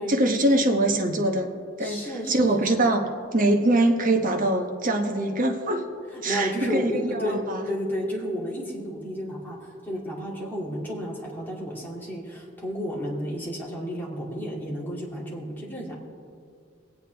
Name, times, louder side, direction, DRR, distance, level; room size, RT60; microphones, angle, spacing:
voice 1, 0.1-1.5 1.8-5.8 6.2-7.6, right 1 dB, 45° right, 4 dB, 1.1 m, -23 dB
voice 2, 1.8-2.9 6.2-7.4 7.7-15.9, equal, 10° left, -5 dB, 2.5 m, -32 dB
22.0 x 8.3 x 3.4 m, 2.3 s
head